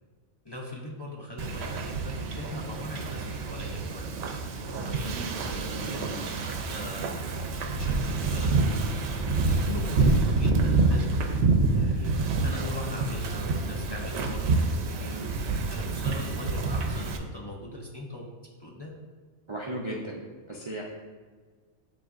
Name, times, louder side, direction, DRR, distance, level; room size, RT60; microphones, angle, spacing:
voice 1, 0.4-4.1 4.6-7.1 7.7-8.8 9.5-12.2 12.4-15.2 15.7-18.2 18.6-18.9, left 1 dB, 25° left, -3 dB, 0.6 m, -40 dB
Wind / Ocean, 1.4-17.2, right 3 dB, 70° right, 0.8 m, -27 dB
voice 2, 5.0-5.3 5.6-6.2 15.1-15.3 19.5-20.2 20.5-20.8, right 1 dB, 35° right, -3 dB, 0.5 m, -37 dB
sound 1, 7.5-14.9, left 4 dB, 75° left, 1.2 m, -39 dB
9.8 x 3.9 x 2.5 m, 1.5 s
omnidirectional pair, 1.2 m